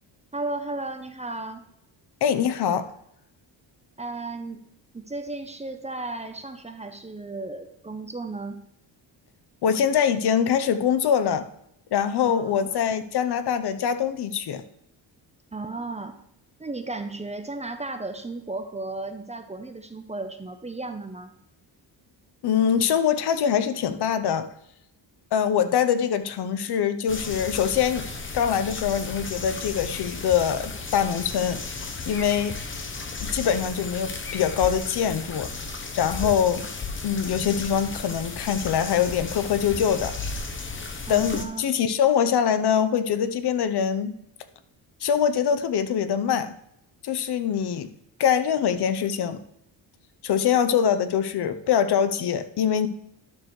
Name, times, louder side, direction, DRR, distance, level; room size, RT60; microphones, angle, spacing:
voice 1, 0.3-1.7 4.0-4.6 4.9-8.6 12.2-12.7 15.5-16.2 16.6-21.3 41.1-41.6, right 2 dB, 15° right, 7 dB, 0.7 m, -34 dB
voice 2, 2.2-2.9 9.6-11.5 11.9-14.6 22.4-24.5 25.3-28.1 28.3-31.6 32.1-32.5 33.2-35.5 35.9-36.7 37.0-40.1 41.1-44.1 45.0-46.5 47.0-47.9 48.2-49.4 50.2-52.9, left 8 dB, 60° left, 11 dB, 0.8 m, -23 dB
sound 1, 27.1-41.5, left 3 dB, 25° left, 0.9 m, -34 dB
11.5 x 6.5 x 3.2 m, 0.76 s
cardioid pair, 115°, 46 cm